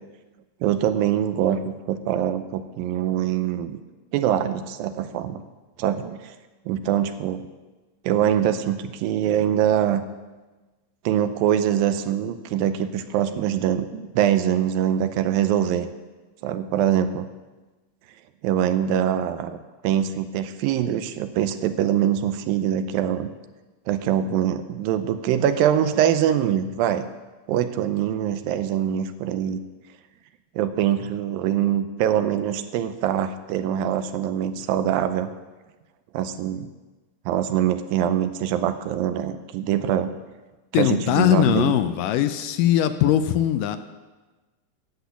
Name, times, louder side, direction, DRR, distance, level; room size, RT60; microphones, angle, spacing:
voice 1, 0.6-3.8 4.1-5.4 5.8-6.3 6.7-7.5 8.0-10.0 11.1-15.9 16.4-17.3 18.4-23.3 23.9-27.1 27.5-29.6 30.6-35.3 36.1-36.7 37.3-40.2 40.8-41.8, right 10 dB, 90° right, 10 dB, 2.4 m, -23 dB
voice 2, 40.7-43.8, left 11 dB, 80° left, 10 dB, 2.0 m, -20 dB
10.5 x 8.0 x 8.2 m, 1.2 s
omnidirectional pair, 4.1 m